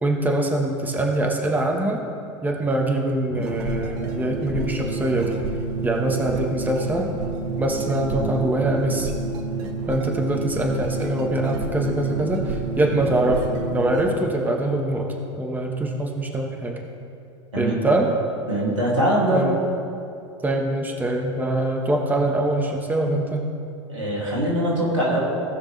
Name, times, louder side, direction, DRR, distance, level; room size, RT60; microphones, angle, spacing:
voice 1, 0.0-2.0 2.4-5.4 5.8-7.1 7.6-9.1 9.9-16.7 17.6-18.1 19.3-19.5 20.4-23.5, right 1 dB, 10° right, 1 dB, 1.3 m, -23 dB
sound 1, 3.3-14.2, right 4 dB, 60° right, 1.0 m, -29 dB
voice 2, 18.5-19.5 23.9-25.2, right 1 dB, 90° right, -4 dB, 2.5 m, -22 dB
17.0 x 6.0 x 3.2 m, 2.5 s
hypercardioid pair, 85°, 15 cm